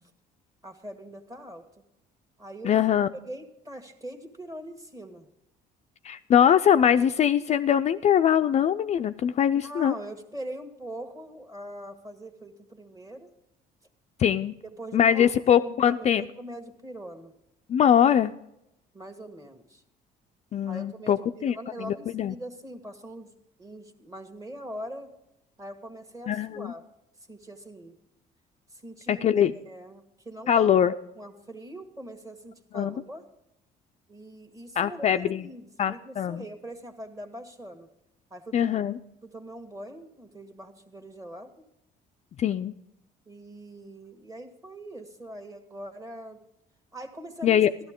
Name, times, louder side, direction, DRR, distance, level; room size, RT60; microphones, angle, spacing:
voice 1, 0.6-1.7 2.4-2.7 3.2-5.3 9.5-13.3 14.6-17.3 18.9-19.8 20.7-23.3 23.6-25.1 25.6-26.8 27.3-28.0 28.7-30.7 31.2-33.3 34.1-37.9 38.3-38.8 39.2-41.7 43.2-46.4 46.9-47.6, right 1 dB, 20° right, 6 dB, 1.5 m, -42 dB
voice 2, 2.6-3.1 6.0-9.9 14.2-14.5 14.9-16.3 17.7-18.3 20.5-21.2 21.4-22.3 26.3-26.7 29.1-29.5 30.5-30.9 32.7-32.9 34.8-35.4 35.8-36.4 38.5-39.0 42.4-42.7 47.4-47.7, left 9 dB, 40° left, 9 dB, 0.4 m, -22 dB
13.0 x 12.0 x 3.6 m, 0.81 s
cardioid pair, 110°, 17 cm